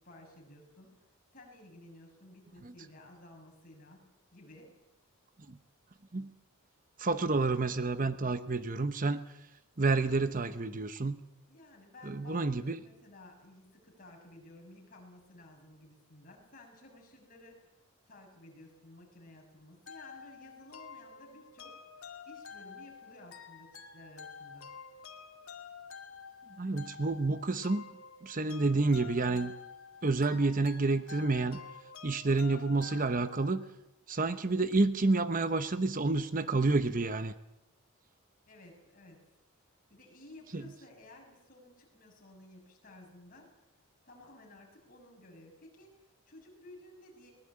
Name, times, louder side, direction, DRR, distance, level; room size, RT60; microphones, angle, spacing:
voice 1, 0.0-4.8 11.5-17.7 18.1-21.8 22.3-24.7 38.4-39.2 39.9-43.6 44.0-47.3, left 1 dB, 40° left, 0 dB, 6.6 m, -55 dB
voice 2, 7.0-9.2 9.8-11.2 12.0-12.8 26.6-27.8 28.2-29.5 30.0-31.6 32.0-33.6 34.1-37.3 40.5-40.6, right 3 dB, 35° right, 11 dB, 0.9 m, -29 dB
sound 1, 19.9-33.7, left 6 dB, 70° left, 2.3 m, -49 dB
22.0 x 19.5 x 8.7 m, 0.92 s
head